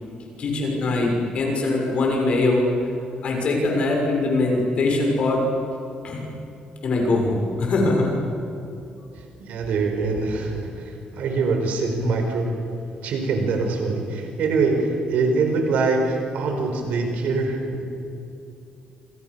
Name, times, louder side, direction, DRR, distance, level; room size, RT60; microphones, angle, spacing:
voice 1, 0.4-2.7 3.2-5.4 6.0-6.2 6.8-8.2, left 2 dB, 45° left, 0 dB, 6.5 m, -22 dB
voice 2, 9.4-12.5 13.0-17.8, right 3 dB, 70° right, 3 dB, 4.7 m, -24 dB
29.5 x 27.0 x 7.0 m, 2.8 s
cardioid pair, 175°, 3 cm